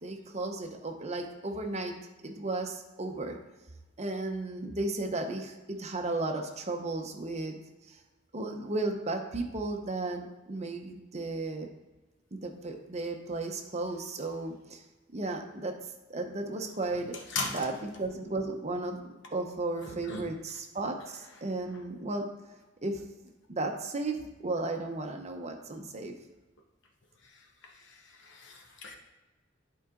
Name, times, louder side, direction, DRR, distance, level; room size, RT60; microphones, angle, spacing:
voice 1, 0.0-3.4 4.0-7.6 7.9-8.0 8.3-11.7 12.3-14.8 15.1-19.0 19.3-22.5 22.8-26.1, right 2 dB, 35° right, 4 dB, 0.8 m, -35 dB
voice 2, 28.2-29.0, left 3 dB, 65° left, 2 dB, 1.2 m, -35 dB
11.0 x 4.7 x 3.8 m, 1.1 s
head